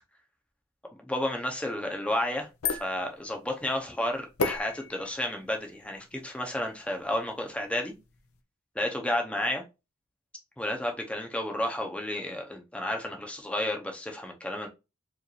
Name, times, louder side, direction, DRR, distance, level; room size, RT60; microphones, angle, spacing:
voice 1, 1.0-7.9 8.7-9.6 10.6-14.7, left 1 dB, 5° left, 0.7 m, -32 dB
sound 1, 2.2-8.4, left 4 dB, 85° left, 0.6 m, -38 dB
4.8 x 2.6 x 3.1 m
head